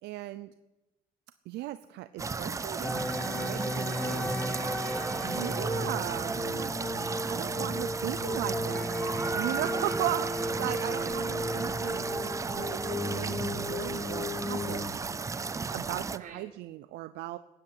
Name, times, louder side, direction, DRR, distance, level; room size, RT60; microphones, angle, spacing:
voice 1, 0.0-0.5 1.5-3.1 3.3-4.2 5.2-6.7 7.2-9.0 9.3-12.3 12.6-14.9 15.7-17.4, right 15 dB, 80° right, 13 dB, 0.6 m, -37 dB
sound 1, 2.2-16.2, right 4 dB, 20° right, 0.5 m, -34 dB
sound 2, 2.8-14.9, left 1 dB, 10° left, 1.5 m, -34 dB
voice 2, 3.9-5.5 10.9-11.1 16.1-16.4, right 6 dB, 50° right, -1 dB, 5.1 m, -49 dB
15.5 x 11.0 x 8.4 m, 1.1 s
cardioid pair, 110°, 17 cm